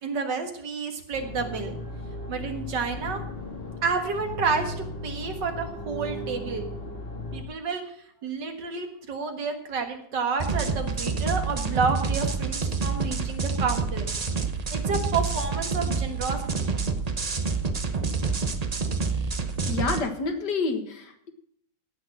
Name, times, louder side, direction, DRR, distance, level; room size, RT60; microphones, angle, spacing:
voice 1, 0.0-1.8 2.3-3.2 3.8-6.7 7.3-8.0 8.2-14.0 14.7-16.7, right 5 dB, 85° right, 5 dB, 2.3 m, -30 dB
sound 1, 1.1-7.4, left 1 dB, 35° left, 1.8 m, -36 dB
sound 2, 10.4-20.0, right 4 dB, 30° right, 0.7 m, -28 dB
voice 2, 19.7-21.3, left 4 dB, 75° left, 6 dB, 2.2 m, -28 dB
17.0 x 6.4 x 6.0 m, 0.66 s
omnidirectional pair, 1.9 m